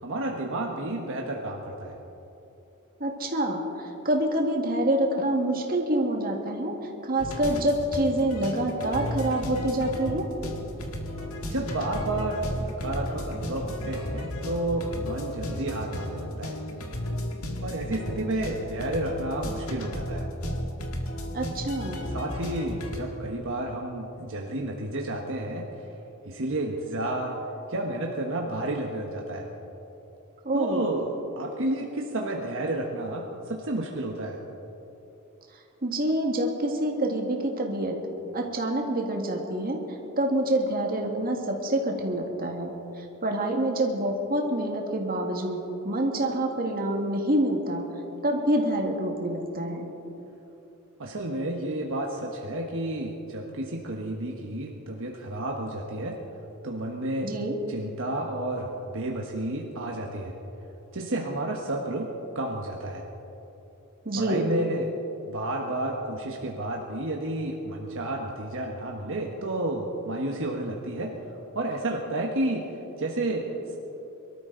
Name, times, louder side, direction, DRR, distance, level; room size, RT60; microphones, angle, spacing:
voice 1, 0.0-2.0 11.5-16.6 17.6-20.3 22.1-25.9 26.2-27.4 27.7-29.5 30.5-34.4 51.0-56.2 56.6-57.3 57.7-60.3 60.9-63.0 64.1-64.9 65.3-71.1 71.5-72.7 73.0-73.8, right 1 dB, 65° right, 0 dB, 1.3 m, -31 dB
voice 2, 3.0-6.7 7.0-10.2 21.3-22.0 30.5-30.8 35.8-38.0 38.3-39.8 40.2-42.7 43.2-47.8 48.2-49.9 57.2-57.5 64.1-64.5, right 1 dB, 45° right, 1 dB, 1.9 m, -26 dB
sound 1, 7.2-23.0, equal, 70° left, 1.8 m, -34 dB
24.0 x 13.0 x 3.9 m, 2.9 s
head